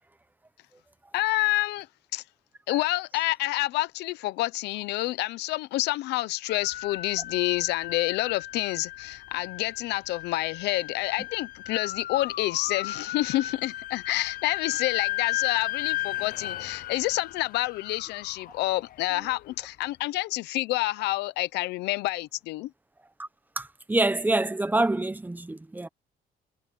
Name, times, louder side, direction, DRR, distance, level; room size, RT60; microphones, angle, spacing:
voice 1, 1.1-1.9 2.1-2.2 2.7-22.7, left 18 dB, 85° left, 0.9 m, -28 dB
sound 1, 6.5-19.5, left 15 dB, 60° left, 0.6 m, -35 dB
voice 2, 23.6-25.9, right 2 dB, 10° right, 1.2 m, -26 dB
cardioid pair, 110°, 17 cm